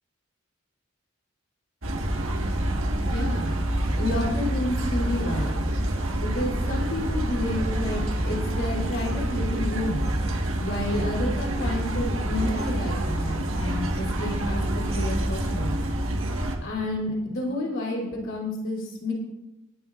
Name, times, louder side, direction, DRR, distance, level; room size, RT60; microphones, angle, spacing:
sound 1, 1.8-16.6, right 1 dB, 85° right, 1.6 m, -27 dB
voice 1, 3.0-3.6 3.9-5.7 6.2-10.1 10.6-15.8 16.6-19.1, left 1 dB, 65° left, -2 dB, 3.3 m, -30 dB
20.0 x 12.5 x 2.5 m, 1.0 s
head